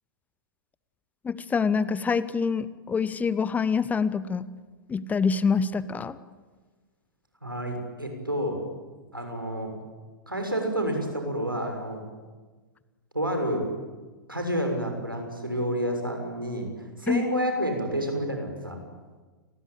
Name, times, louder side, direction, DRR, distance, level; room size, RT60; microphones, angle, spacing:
voice 1, 1.2-4.5 4.9-6.2 17.1-17.2, left 5 dB, 15° left, 17 dB, 1.0 m, -26 dB
voice 2, 7.4-8.6 9.1-9.8 10.3-12.0 13.1-13.7 14.3-18.8, equal, 90° right, 4 dB, 6.7 m, -29 dB
29.5 x 21.5 x 8.9 m, 1.3 s
figure-of-eight pair, 100°, 11 cm